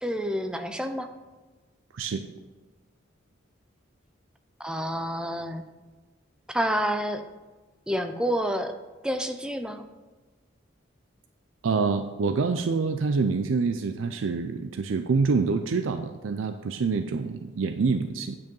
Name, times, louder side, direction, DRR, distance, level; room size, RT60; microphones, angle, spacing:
voice 1, 0.0-1.1 4.6-5.6 6.5-7.2 7.9-8.7 9.0-9.8, equal, 5° right, 7 dB, 0.5 m, -28 dB
voice 2, 1.9-2.2 11.6-18.3, right 4 dB, 85° right, 8 dB, 0.5 m, -26 dB
9.2 x 5.4 x 5.4 m, 1.3 s
head